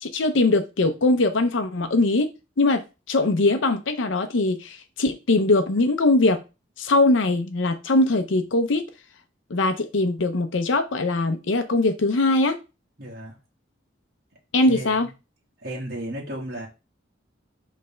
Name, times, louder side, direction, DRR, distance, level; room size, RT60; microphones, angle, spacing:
voice 1, 0.0-2.3 2.6-6.4 6.8-8.8 9.5-12.6 14.5-15.1, left 2 dB, 75° left, 8 dB, 0.7 m, -21 dB
voice 2, 13.0-13.3 14.7-14.9 15.6-16.7, right 1 dB, 50° right, -2 dB, 1.6 m, -33 dB
5.3 x 3.4 x 5.5 m, 0.28 s
head